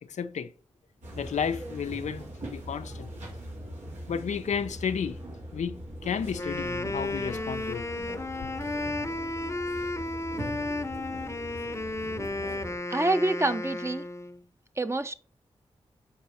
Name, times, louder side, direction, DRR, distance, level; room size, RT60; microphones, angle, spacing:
voice 1, 0.1-0.5 1.2-2.2 2.5-3.1 4.1-5.2 5.5-7.8, left 7 dB, 80° left, 0.6 m, -32 dB
sound 1, 1.0-12.8, right 1 dB, 80° right, 3.7 m, -41 dB
Wind instrument woodwind instrument, 6.2-14.4, left 2 dB, 25° left, 0.9 m, -33 dB
voice 2, 12.9-14.1 14.8-15.1, right 2 dB, 20° right, 0.9 m, -26 dB
7.1 x 4.7 x 4.2 m
cardioid pair, 40°, 12 cm